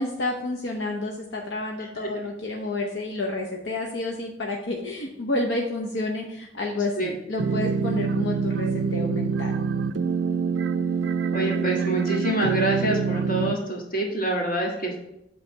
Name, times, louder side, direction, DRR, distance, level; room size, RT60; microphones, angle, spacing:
voice 1, 0.0-9.5, left 2 dB, 75° left, 0 dB, 0.8 m, -29 dB
sound 1, 7.4-13.6, right 5 dB, 80° right, 0.4 m, -25 dB
voice 2, 11.3-15.0, right 1 dB, 50° left, -1 dB, 1.6 m, -26 dB
7.9 x 3.3 x 6.0 m, 0.85 s
head